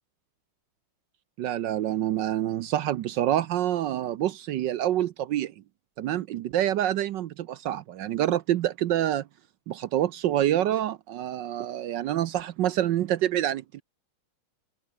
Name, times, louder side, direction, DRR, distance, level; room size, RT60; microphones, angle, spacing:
voice 1, 1.4-5.5 6.0-9.2 9.7-13.8, right 12 dB, 70° right, 1.3 m, -27 dB
omnidirectional pair, 2.2 m